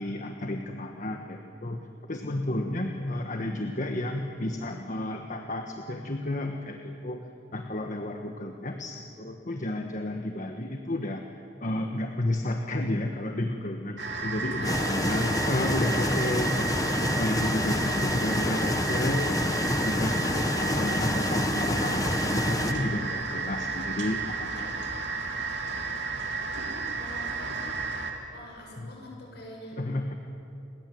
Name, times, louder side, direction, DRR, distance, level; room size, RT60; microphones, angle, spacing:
voice 1, 0.0-7.2 7.5-11.2 11.6-19.3 19.8-24.8 28.8-28.9 29.8-30.2, left 1 dB, 45° left, 4 dB, 1.4 m, -32 dB
sound 1, 14.0-28.1, right 4 dB, 75° right, 3.1 m, -33 dB
voice 2, 14.6-16.2 27.0-27.8 28.3-29.8, left 1 dB, 65° left, -1 dB, 7.3 m, -44 dB
sound 2, 14.6-22.7, left 1 dB, 20° left, 1.4 m, -28 dB
29.0 x 21.5 x 7.8 m, 2.8 s
head